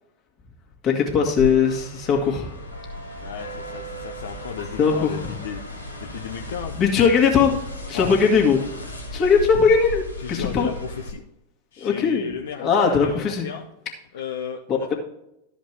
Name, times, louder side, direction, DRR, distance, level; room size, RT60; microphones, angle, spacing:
voice 1, 0.8-2.5 4.8-5.1 6.8-7.6 7.9-8.6 9.1-10.0 10.3-10.7 11.8-12.3 12.6-13.5, left 6 dB, 35° left, 1 dB, 2.1 m, -19 dB
sound 1, 1.4-11.1, left 2 dB, 85° left, 1.7 m, -35 dB
voice 2, 3.2-6.8 7.9-8.1 10.2-11.2 11.7-13.7 14.1-14.9, left 7 dB, 60° left, 3 dB, 0.7 m, -34 dB
13.0 x 5.1 x 4.7 m, 0.82 s
figure-of-eight pair, 90°, 0 cm